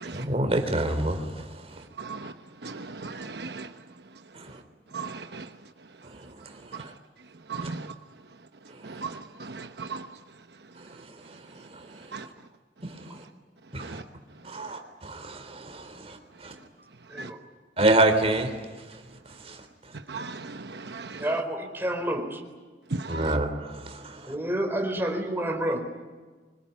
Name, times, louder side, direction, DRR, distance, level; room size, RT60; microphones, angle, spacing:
voice 1, 0.0-1.5 4.3-4.6 6.8-6.9 7.6-7.7 12.8-13.0 13.7-14.0 14.4-16.5 17.8-18.5 19.5-19.6 23.1-24.3, right 1 dB, 35° right, 6 dB, 3.6 m, -27 dB
voice 2, 2.0-2.3 2.6-2.7 3.0-3.7 4.9-5.4 7.5-7.8 9.0-9.1 9.8-10.0 12.1-12.2 17.2-17.3 20.1-20.4 20.9-21.1 23.1-23.2, right 4 dB, 65° right, 7 dB, 1.0 m, -35 dB
voice 3, 21.2-22.4 24.3-25.8, right 1 dB, 15° right, 2 dB, 4.4 m, -29 dB
25.5 x 21.5 x 9.5 m, 1.4 s
head